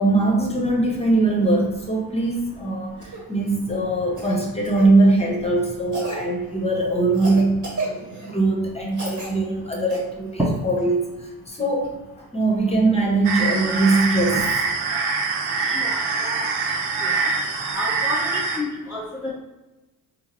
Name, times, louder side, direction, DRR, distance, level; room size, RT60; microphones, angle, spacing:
voice 1, 0.0-11.9 12.3-14.4 15.6-15.8, right 2 dB, 15° left, -1 dB, 1.0 m, -21 dB
Cough, 3.0-3.2 4.2-4.9 5.9-6.2 7.1-8.4 8.9-9.3 9.9-10.0 11.8-11.9, right 2 dB, 40° right, 1.4 m, -32 dB
sound 1, 13.2-18.6, right 4 dB, 55° right, 0.7 m, -24 dB
voice 2, 15.7-16.4 17.0-17.3 17.7-19.3, left 1 dB, 5° right, -7 dB, 0.8 m, -29 dB
4.6 x 2.1 x 3.3 m, 1.1 s
figure-of-eight pair, 40°, 48 cm